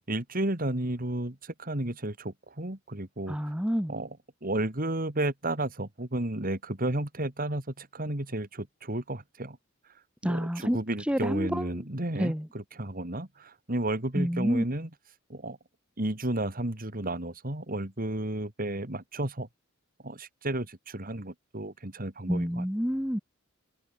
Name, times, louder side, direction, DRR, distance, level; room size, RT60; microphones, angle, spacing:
voice 1, 0.0-3.5 3.9-9.6 10.2-14.9 15.3-15.6 16.0-19.5 20.0-22.7, right 1 dB, 45° right, 3.2 m, -32 dB
voice 2, 3.3-3.9 10.2-10.8 11.1-11.7 12.2-12.5 14.1-14.6 22.3-23.2, equal, 5° right, 3.0 m, -28 dB
head